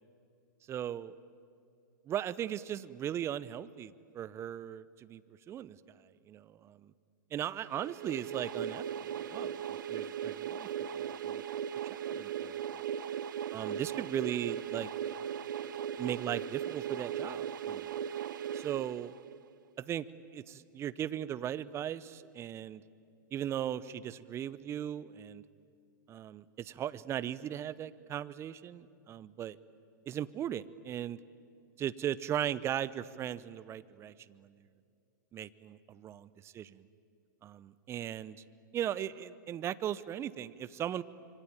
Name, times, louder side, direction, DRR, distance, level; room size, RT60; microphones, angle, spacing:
voice 1, 0.7-1.1 2.1-5.2 5.5-5.8 6.3-6.9 7.3-11.4 11.9-12.6 13.5-14.9 16.0-18.0 18.5-19.1 19.8-20.1 20.3-22.8 23.3-25.4 26.1-29.6 30.1-31.2 31.8-34.6 35.3-36.8 37.4-38.4 38.7-41.0, right 10 dB, 25° right, 18 dB, 0.8 m, -38 dB
sound 1, 7.7-19.5, right 9 dB, 70° right, 0.8 m, -38 dB
26.0 x 24.0 x 8.9 m, 2.4 s
hypercardioid pair, 115°, 11 cm